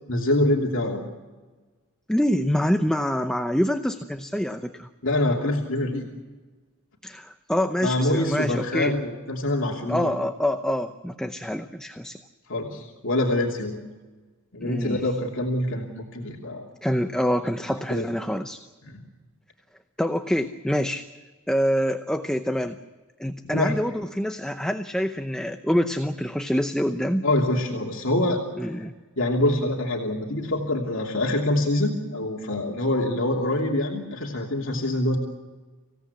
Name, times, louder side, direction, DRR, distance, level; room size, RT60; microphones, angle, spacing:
voice 1, 0.1-1.0 5.0-6.1 7.8-10.1 12.5-13.8 14.5-16.7 17.9-18.1 18.8-19.0 23.5-23.8 27.2-28.7 29.2-35.2, left 1 dB, 65° left, -1 dB, 3.0 m, -25 dB
voice 2, 2.1-4.9 7.0-8.9 9.9-12.2 14.6-15.0 16.8-18.6 20.0-21.1 21.5-22.8 23.2-27.3 28.6-28.9, equal, 5° left, 7 dB, 0.7 m, -26 dB
25.5 x 17.0 x 8.4 m, 1.3 s
head